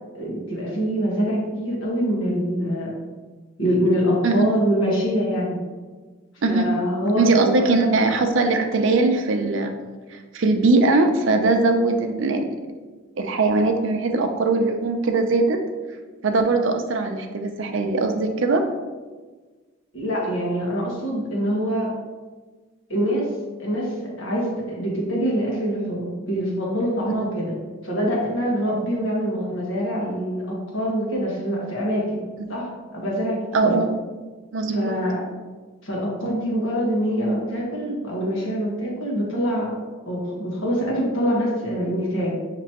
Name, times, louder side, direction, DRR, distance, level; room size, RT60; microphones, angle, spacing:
voice 1, 0.1-2.9 3.6-5.6 6.5-8.1 19.9-21.9 22.9-23.3 23.6-27.6 27.8-32.2 32.5-33.8 34.7-35.2 35.8-39.8 40.0-42.4, equal, 80° left, -3 dB, 1.3 m, -24 dB
voice 2, 7.1-9.7 10.1-12.5 13.2-15.6 16.2-18.7 33.5-33.9 34.5-34.9, right 3 dB, 70° right, 5 dB, 0.5 m, -20 dB
6.1 x 3.0 x 2.9 m, 1.3 s
head